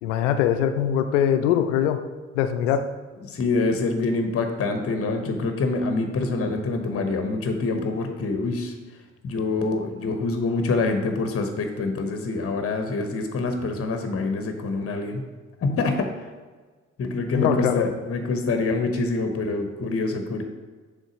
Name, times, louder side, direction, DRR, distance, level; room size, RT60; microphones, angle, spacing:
voice 1, 0.0-2.0 2.3-2.9 17.3-17.9, left 9 dB, 75° left, 9 dB, 0.6 m, -22 dB
voice 2, 3.2-8.7 9.2-15.2 15.6-16.1 17.0-20.4, left 3 dB, 40° left, 5 dB, 1.0 m, -26 dB
6.5 x 3.8 x 5.1 m, 1.4 s
figure-of-eight pair, 40°, 37 cm